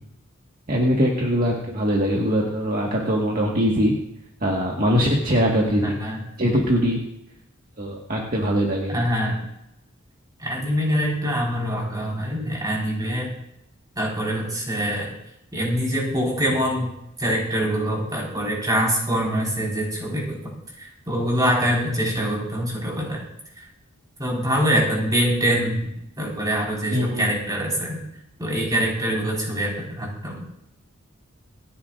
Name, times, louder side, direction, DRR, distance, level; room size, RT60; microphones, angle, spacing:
voice 1, 0.7-3.9 4.4-6.0 6.4-7.0 7.8-9.0 26.9-27.3, equal, 45° right, -2 dB, 1.8 m, -22 dB
voice 2, 5.8-6.2 8.9-9.4 10.4-13.3 13.9-15.1 15.5-16.9 17.2-20.4 20.8-23.2 24.2-28.0 28.4-30.4, equal, 20° right, -3 dB, 4.9 m, -24 dB
27.0 x 10.5 x 2.6 m, 0.81 s
head